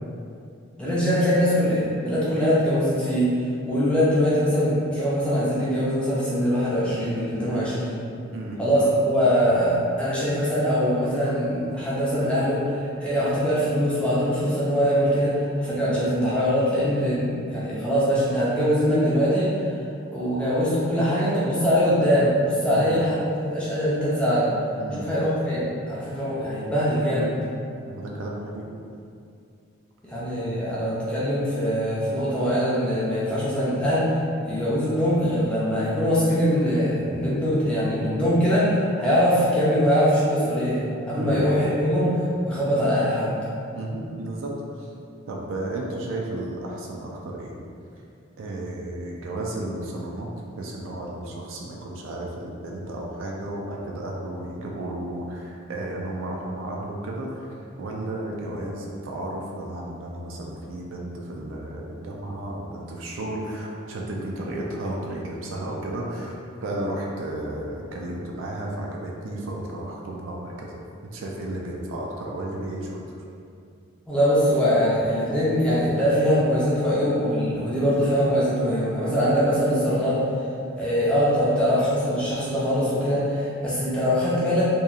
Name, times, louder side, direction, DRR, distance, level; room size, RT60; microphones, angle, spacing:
voice 1, 0.8-3.4 3.7-7.9 8.6-19.6 20.1-24.5 25.0-27.3 30.0-34.2 34.4-43.3 74.1-80.2 80.8-84.6, equal, 5° left, -9 dB, 0.5 m, -22 dB
voice 2, 24.8-25.1 27.8-28.7 41.1-41.4 43.7-44.9 45.3-47.6 48.4-50.3 50.6-57.5 57.8-73.0, right 1 dB, 70° right, -2 dB, 0.4 m, -33 dB
2.9 x 2.3 x 2.4 m, 2.5 s
head